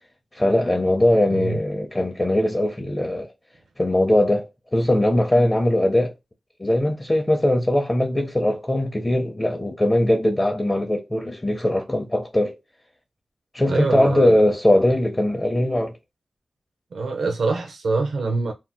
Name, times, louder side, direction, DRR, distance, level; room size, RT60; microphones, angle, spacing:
voice 1, 0.3-3.3 3.8-6.1 6.6-12.6 13.5-15.9, left 1 dB, 20° left, 0.5 m, -20 dB
voice 2, 13.7-14.4 16.9-18.5, right 3 dB, 85° right, 0.5 m, -24 dB
2.7 x 2.2 x 3.3 m
wide cardioid pair, 105°, 0 cm